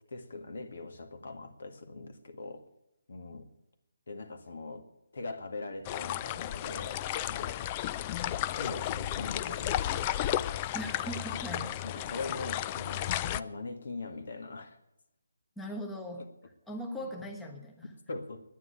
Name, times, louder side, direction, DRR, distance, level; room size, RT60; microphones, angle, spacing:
voice 1, 0.1-2.6 3.1-3.5 4.1-4.9 5.1-7.7 8.2-9.8 11.3-14.8 16.2-16.3 16.8-17.1 17.8-18.4, left 3 dB, 65° left, 7 dB, 1.9 m, -42 dB
sound 1, 5.9-13.4, left 12 dB, 25° left, 0.4 m, -33 dB
voice 2, 10.7-11.7 12.0-12.2 15.6-16.2 16.7-17.9, equal, 5° left, 1 dB, 1.2 m, -40 dB
10.0 x 9.6 x 9.9 m, 0.88 s
figure-of-eight pair, 155°, 0 cm